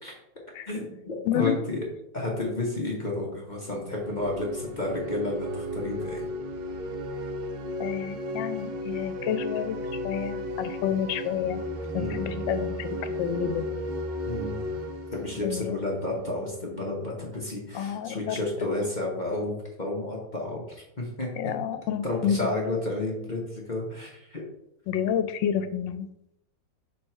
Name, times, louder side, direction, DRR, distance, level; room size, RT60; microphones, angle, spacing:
voice 1, 0.7-1.8 2.1-6.2 12.0-12.3 14.2-14.6 15.1-20.6 21.0-21.5 22.0-24.4, left 2 dB, 30° left, -2 dB, 1.0 m, -31 dB
sound 1, 3.9-16.5, left 1 dB, 70° right, 1.3 m, -34 dB
voice 2, 7.8-9.8 10.0-11.6 11.9-13.8 15.4-15.8 17.7-18.4 21.4-22.4 24.9-26.1, left 9 dB, 90° left, 11 dB, 1.3 m, -29 dB
6.3 x 3.4 x 4.4 m, 0.82 s
omnidirectional pair, 2.0 m